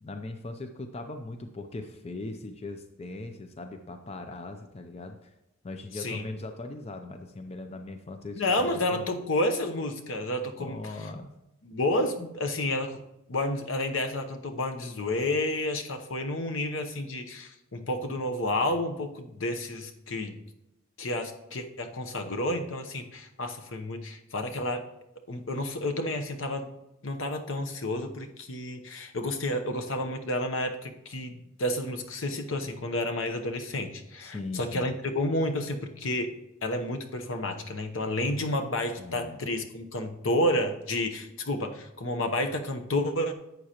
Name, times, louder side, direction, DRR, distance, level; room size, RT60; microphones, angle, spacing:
voice 1, 0.0-5.3 5.6-9.1 10.6-11.3 34.2-34.9 39.0-39.4, left 2 dB, 30° left, 6 dB, 0.5 m, -40 dB
voice 2, 5.9-6.3 8.4-10.8 11.6-13.0 13.3-20.4 21.0-24.8 25.3-26.7 27.0-36.3 36.6-43.3, left 1 dB, 65° left, 6 dB, 0.9 m, -30 dB
11.5 x 7.9 x 2.9 m, 0.90 s
head